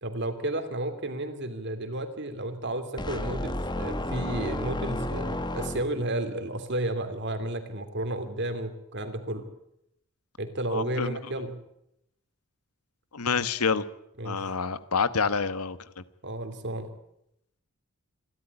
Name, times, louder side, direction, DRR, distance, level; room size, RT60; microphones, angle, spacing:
voice 1, 0.0-9.5 10.4-11.6 14.2-14.5 16.2-16.9, right 1 dB, 50° right, 8 dB, 3.0 m, -32 dB
sound 1, 3.0-6.2, left 1 dB, 20° left, 1.6 m, -32 dB
voice 2, 10.7-11.2 13.1-13.8 14.2-16.0, left 5 dB, 85° left, 14 dB, 1.2 m, -28 dB
27.0 x 12.5 x 9.9 m, 0.79 s
head